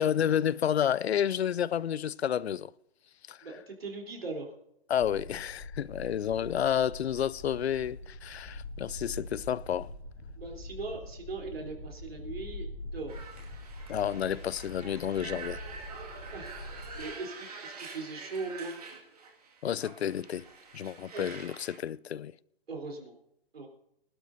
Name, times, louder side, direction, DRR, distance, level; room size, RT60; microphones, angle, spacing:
voice 1, 0.0-2.7 3.3-3.5 4.9-9.9 13.9-15.6 19.6-20.5 20.7-22.3, left 9 dB, 85° left, 0.5 m, -30 dB
voice 2, 3.4-4.5 6.4-6.5 10.4-12.7 12.9-13.1 16.3-16.6 16.9-18.8 21.1-21.2 22.7-23.1 23.5-23.7, right 3 dB, 70° right, 3.7 m, -39 dB
sound 1, 5.0-17.0, left 1 dB, 5° left, 2.0 m, -44 dB
sound 2, 13.1-21.8, right 4 dB, 40° right, 2.1 m, -46 dB
25.0 x 12.0 x 2.7 m
hypercardioid pair, 180°, 31 cm